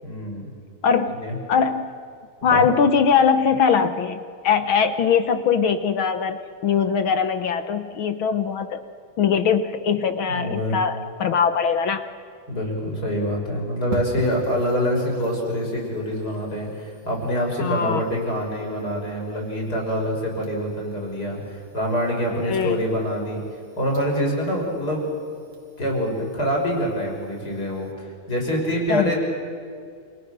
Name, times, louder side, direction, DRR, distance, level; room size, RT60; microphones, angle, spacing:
voice 1, 0.0-0.5 1.2-1.3 2.5-2.7 10.3-10.8 12.5-23.4 23.8-25.0 25.8-29.2, equal, 30° left, -1 dB, 6.3 m, -25 dB
voice 2, 0.8-1.2 1.5-1.9 2.4-4.2 4.4-8.8 9.2-12.0 17.6-18.0 22.5-22.8 28.9-29.1, left 6 dB, 65° left, 9 dB, 1.3 m, -21 dB
sound 1, 13.9-27.9, right 4 dB, 70° right, 4.1 m, -44 dB
28.5 x 27.5 x 6.7 m, 2.3 s
omnidirectional pair, 3.4 m